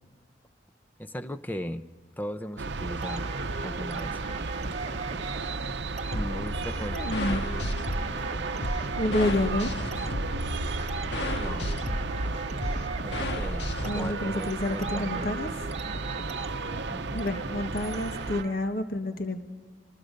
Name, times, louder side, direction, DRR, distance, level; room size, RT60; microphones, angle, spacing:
voice 1, 1.0-1.8 2.2-3.3 3.6-4.2 6.1-7.1 11.3-11.9 13.0-15.3 16.7-17.3, equal, 10° left, 10 dB, 0.7 m, -37 dB
sound 1, 2.6-18.4, right 3 dB, 70° right, 0.8 m, -34 dB
sound 2, 3.0-18.8, right 3 dB, 35° right, 0.9 m, -40 dB
sound 3, 6.1-14.1, left 1 dB, 70° left, 1.7 m, -33 dB
voice 2, 6.9-7.5 9.0-9.7 13.8-15.5 17.1-19.4, left 1 dB, 50° left, 6 dB, 1.5 m, -29 dB
28.0 x 19.5 x 5.3 m, 1.5 s
head